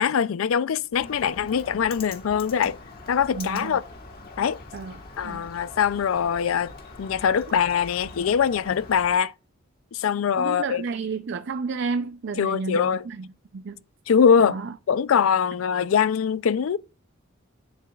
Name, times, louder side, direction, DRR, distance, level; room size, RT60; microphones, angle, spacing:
voice 1, 0.0-2.8 3.1-3.8 4.4-4.6 5.2-6.7 7.0-9.3 9.9-10.8 12.4-13.0 14.1-14.6 14.9-16.8, left 7 dB, 75° left, 0.4 m, -22 dB
Bird, 0.9-9.1, left 3 dB, 50° left, 1.4 m, -43 dB
voice 2, 3.3-3.8 4.7-5.5 10.4-13.3 13.5-13.8 14.4-14.8, right 4 dB, 60° right, 0.4 m, -31 dB
10.5 x 6.8 x 2.3 m
head